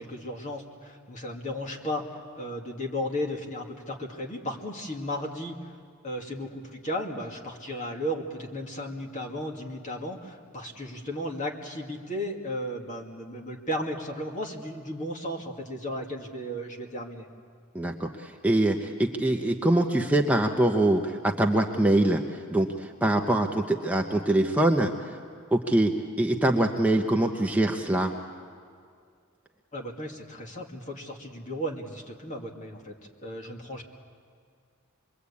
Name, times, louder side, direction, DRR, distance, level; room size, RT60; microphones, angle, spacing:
voice 1, 0.0-5.7 6.0-17.3 29.7-32.9 33.2-33.8, equal, 35° left, 0 dB, 2.3 m, -35 dB
voice 2, 17.7-22.2 22.5-22.7 23.0-24.9 25.5-28.1, right 1 dB, 5° right, 2 dB, 0.9 m, -24 dB
26.0 x 22.5 x 8.5 m, 2.2 s
head